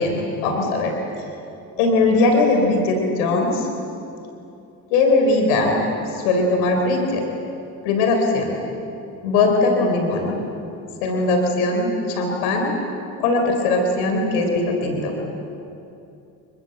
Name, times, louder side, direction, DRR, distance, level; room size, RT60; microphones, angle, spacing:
voice 1, 0.0-1.0 1.8-3.7 4.9-5.8 6.1-7.2 7.8-8.6 9.2-10.4 11.0-12.7 13.2-15.2, left 3 dB, 85° left, 3 dB, 3.8 m, -20 dB
28.5 x 24.0 x 7.8 m, 2.7 s
hypercardioid pair, 60°, 42 cm